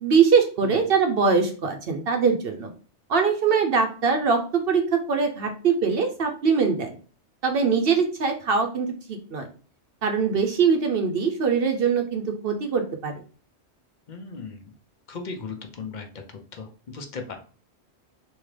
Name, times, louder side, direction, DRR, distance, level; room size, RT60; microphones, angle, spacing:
voice 1, 0.0-2.7 3.1-7.0 7.4-9.5 10.0-13.1, right 5 dB, 65° right, 4 dB, 0.8 m, -22 dB
voice 2, 14.1-14.7 15.1-16.2 16.5-17.4, left 4 dB, 50° left, 5 dB, 0.7 m, -37 dB
3.5 x 2.8 x 3.2 m, 0.39 s
omnidirectional pair, 1.1 m